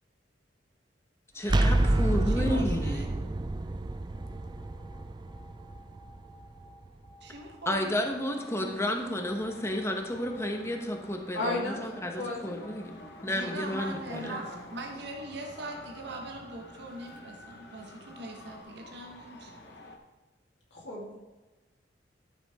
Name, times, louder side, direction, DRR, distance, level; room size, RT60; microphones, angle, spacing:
voice 1, 1.3-3.1 7.7-13.0 13.2-14.3, left 1 dB, 15° left, 3 dB, 1.1 m, -32 dB
sound 1, 1.4-7.2, right 1 dB, 25° right, 0.5 m, -29 dB
voice 2, 2.3-3.3 7.2-8.0 13.3-19.5, right 2 dB, 65° right, 1 dB, 1.4 m, -41 dB
sound 2, 4.1-18.6, right 1 dB, 30° left, 2.4 m, -56 dB
Traffic noise roadway noise, 7.9-20.0, left 1 dB, 65° left, 1.2 m, -50 dB
voice 3, 11.3-11.8 12.2-12.4 13.0-13.1 13.4-14.6 20.7-21.2, left 2 dB, 80° left, -5 dB, 2.2 m, -35 dB
12.5 x 7.1 x 3.6 m, 1.2 s
head